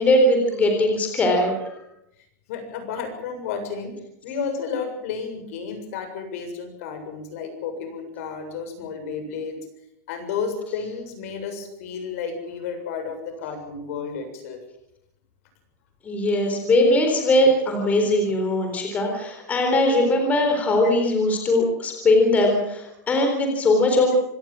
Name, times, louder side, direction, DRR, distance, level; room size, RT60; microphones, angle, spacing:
voice 1, 0.0-1.7 16.0-24.2, left 1 dB, 15° left, 3 dB, 3.8 m, -20 dB
voice 2, 2.5-4.0 4.2-9.6 10.1-14.6, left 5 dB, 55° left, 7 dB, 7.3 m, -32 dB
26.0 x 18.0 x 7.5 m, 0.80 s
supercardioid pair, 165°, 9 cm